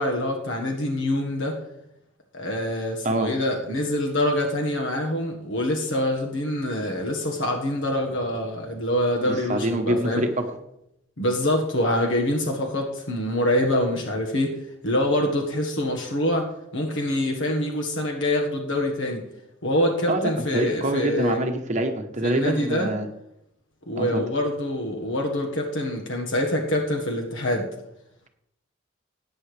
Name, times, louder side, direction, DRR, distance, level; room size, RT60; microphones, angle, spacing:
voice 1, 0.0-1.6 2.3-10.2 11.2-14.6 14.8-16.5 16.7-19.2 19.6-21.4 22.2-22.9 23.9-27.7, left 1 dB, 80° left, 1 dB, 1.6 m, -25 dB
voice 2, 9.2-10.3 20.1-23.1 24.0-24.2, right 1 dB, 40° right, 5 dB, 1.0 m, -25 dB
17.0 x 9.0 x 3.3 m, 0.81 s
head